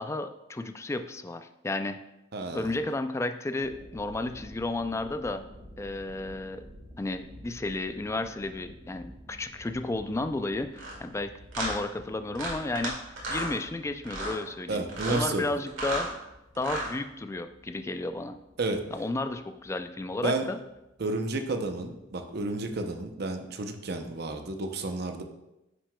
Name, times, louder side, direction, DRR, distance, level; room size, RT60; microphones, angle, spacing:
voice 1, 0.0-2.0 2.5-5.4 5.8-6.6 7.0-16.1 16.6-18.4 18.9-20.6, left 2 dB, 15° left, 8 dB, 0.3 m, -33 dB
voice 2, 2.3-2.7 14.7-15.5 18.6-18.8 20.2-20.4 21.0-25.2, right 2 dB, 55° right, 6 dB, 0.6 m, -31 dB
sound 1, 3.5-23.1, equal, 25° right, 1.9 m, -52 dB
sound 2, 10.7-10.9 11.5-11.7 12.3-12.9 13.2-13.5 14.0-14.4 14.9-15.2 15.7-16.1 16.5-16.9, right 1 dB, 90° right, 2.0 m, -33 dB
9.6 x 6.0 x 2.2 m, 0.93 s
head